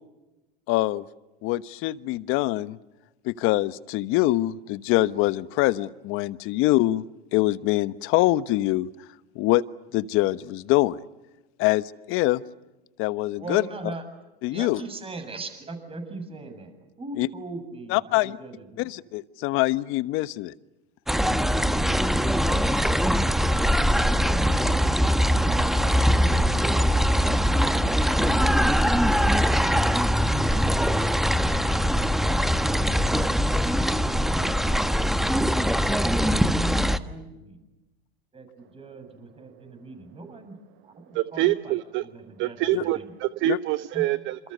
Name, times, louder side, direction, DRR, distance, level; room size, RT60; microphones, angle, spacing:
voice 1, 0.7-1.0 1.4-2.8 3.2-7.0 7.3-8.9 9.3-9.6 9.9-11.0 11.6-12.4 13.0-13.6 14.4-14.8 17.2-17.3 17.9-18.4 18.8-20.5 42.7-42.8 43.5-43.6, left 17 dB, 45° left, 15 dB, 1.2 m, -24 dB
voice 2, 13.4-14.0 14.5-16.7 17.0-18.9 23.3-24.6 25.7-26.9 34.0-34.7 36.7-37.6 38.3-40.5 40.8-43.1 43.9-44.0, right 3 dB, 20° right, 7 dB, 7.5 m, -41 dB
sound 1, 21.1-37.0, equal, ahead, 1.3 m, -22 dB
voice 3, 41.1-42.0 42.4-44.4, right 16 dB, 40° right, 13 dB, 0.9 m, -26 dB
28.0 x 27.5 x 6.8 m, 1.0 s
hypercardioid pair, 110°, 29 cm